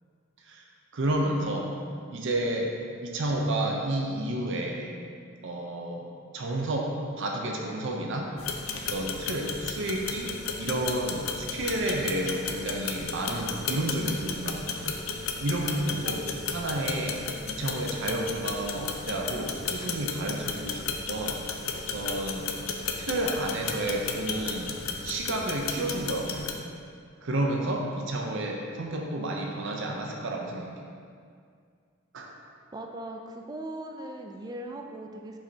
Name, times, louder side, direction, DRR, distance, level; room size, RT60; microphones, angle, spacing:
voice 1, 0.9-1.7 2.1-2.7 3.0-4.9 5.4-6.1 6.3-8.4 8.7-15.0 15.4-16.2 16.5-21.4 21.7-22.5 23.0-24.7 25.0-26.7 27.2-30.7 32.1-32.3, right 1 dB, 60° right, 0 dB, 0.6 m, -31 dB
sound 1, 8.4-26.5, left 5 dB, 70° left, 0.5 m, -34 dB
voice 2, 32.7-35.4, right 1 dB, 20° right, 3 dB, 0.3 m, -39 dB
7.0 x 5.3 x 2.8 m, 2.2 s
head